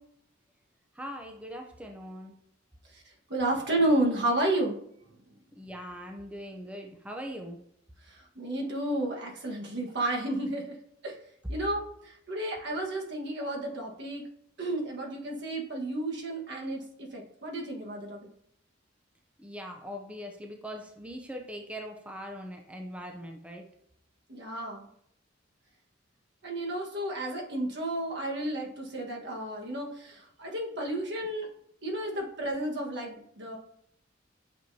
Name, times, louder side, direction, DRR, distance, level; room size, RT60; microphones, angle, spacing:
voice 1, 0.9-2.4 5.5-7.6 19.4-23.7, equal, 5° right, 2 dB, 0.6 m, -41 dB
voice 2, 3.3-4.7 8.0-10.8 11.0-11.2 11.5-14.3 14.6-18.2 24.3-24.9 26.4-31.5 31.8-33.6, right 1 dB, 60° right, 0 dB, 1.4 m, -32 dB
9.3 x 6.1 x 2.7 m, 0.72 s
head